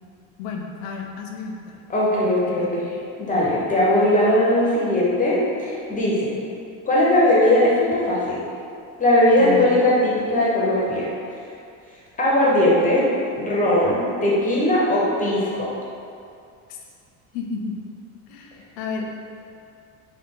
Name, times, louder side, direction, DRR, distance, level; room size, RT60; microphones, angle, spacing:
voice 1, 0.4-1.8 2.2-2.7 9.4-9.7 16.7-16.8 17.3-17.8 18.3-19.1, left 5 dB, 85° left, 2 dB, 0.6 m, -32 dB
voice 2, 1.9-2.9 3.2-6.3 6.8-8.4 9.0-11.0 12.2-13.0 13.4-15.7, left 1 dB, 20° left, -6 dB, 0.6 m, -19 dB
3.2 x 2.2 x 3.6 m, 2.4 s
cardioid pair, 125°, 38 cm